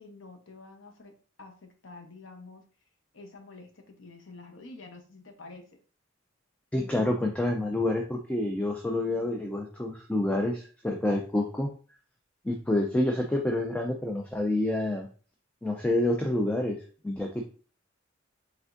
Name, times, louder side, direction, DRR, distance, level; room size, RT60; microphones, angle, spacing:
voice 1, 0.0-2.6 3.1-5.8, left 3 dB, 80° left, 4 dB, 0.9 m, -48 dB
voice 2, 6.7-11.7 12.4-15.1 15.6-17.5, left 1 dB, 5° left, 2 dB, 0.4 m, -28 dB
4.9 x 3.4 x 2.6 m, 0.39 s
head